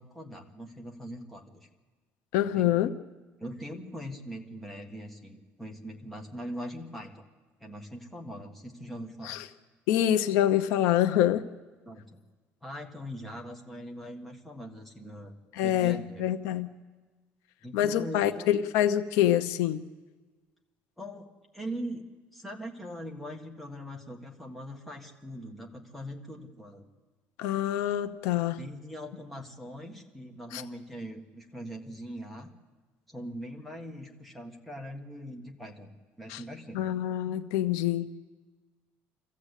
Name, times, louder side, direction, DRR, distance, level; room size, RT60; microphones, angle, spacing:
voice 1, 0.0-1.7 2.5-2.8 3.4-7.3 7.6-9.4 11.9-12.2 12.6-15.3 15.6-16.2 17.6-18.5 21.0-22.0 22.3-26.9 28.6-32.5 33.1-36.8, equal, ahead, 0 dB, 1.7 m, -41 dB
voice 2, 2.3-2.9 9.2-9.4 9.9-11.4 15.6-16.7 17.7-19.8 27.4-28.6 30.5-30.6 36.3-36.4 36.7-38.1, left 11 dB, 80° left, 10 dB, 0.9 m, -26 dB
25.5 x 15.0 x 8.4 m, 1.3 s
cardioid pair, 165°, 5 cm